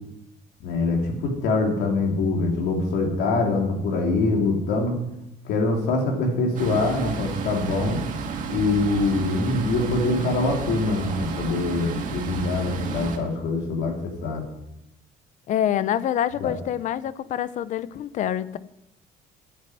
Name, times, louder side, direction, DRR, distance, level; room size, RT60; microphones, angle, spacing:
voice 1, 0.6-4.9 5.4-8.0 8.5-14.4 16.4-16.5, left 3 dB, 80° left, 3.3 m, -24 dB
sound 1, 6.6-13.2, right 5 dB, 50° right, 1.8 m, -31 dB
voice 2, 15.5-18.6, left 10 dB, 50° left, 0.6 m, -26 dB
9.5 x 8.6 x 9.7 m
cardioid pair, 155°, 17 cm